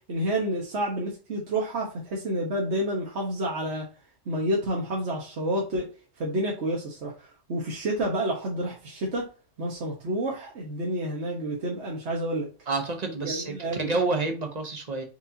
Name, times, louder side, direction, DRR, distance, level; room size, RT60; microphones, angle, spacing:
voice 1, 0.1-3.9 4.3-5.9 6.2-9.3 9.6-12.5 13.2-13.9, right 1 dB, 70° right, 1.4 m, -29 dB
voice 2, 12.7-15.0, right 3 dB, 40° right, 1.0 m, -29 dB
4.7 x 4.2 x 2.7 m
omnidirectional pair, 1.2 m